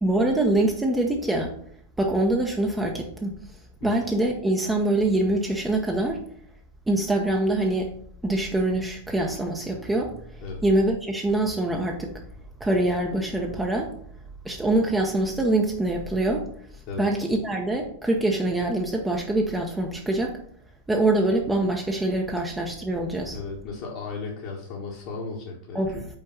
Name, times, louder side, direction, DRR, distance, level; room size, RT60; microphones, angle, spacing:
voice 1, 0.0-1.5 2.0-3.3 3.8-6.2 6.9-7.9 8.2-10.1 10.6-12.1 12.6-13.9 14.4-16.5 17.0-20.4 20.9-23.4 25.7-26.0, right 2 dB, 10° right, 1 dB, 0.9 m, -24 dB
voice 2, 23.3-26.1, left 4 dB, 45° left, -2 dB, 1.3 m, -35 dB
5.7 x 4.5 x 5.5 m, 0.64 s
figure-of-eight pair, 90°, 0 cm